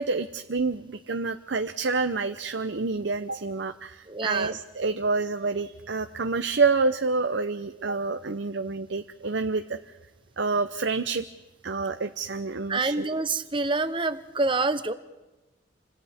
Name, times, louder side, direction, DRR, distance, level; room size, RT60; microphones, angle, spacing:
voice 1, 0.0-9.8 10.4-11.3 11.6-13.1, right 4 dB, 65° right, 8 dB, 0.7 m, -28 dB
voice 2, 4.1-4.6 12.7-14.9, right 3 dB, 25° right, 12 dB, 0.9 m, -27 dB
29.0 x 25.5 x 3.6 m, 1.1 s
head